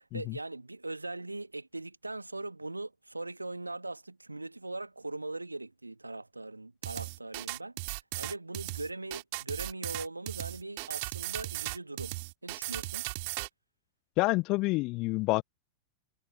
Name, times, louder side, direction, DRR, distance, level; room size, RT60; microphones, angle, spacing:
voice 1, 0.0-12.2 12.4-13.0, right 2 dB, 85° right, 1.4 m, -40 dB
sound 1, 6.8-13.5, right 26 dB, 50° right, 2.1 m, -37 dB
voice 2, 14.2-15.4, left 23 dB, 40° left, 0.4 m, -28 dB
figure-of-eight pair, 90°, 0 cm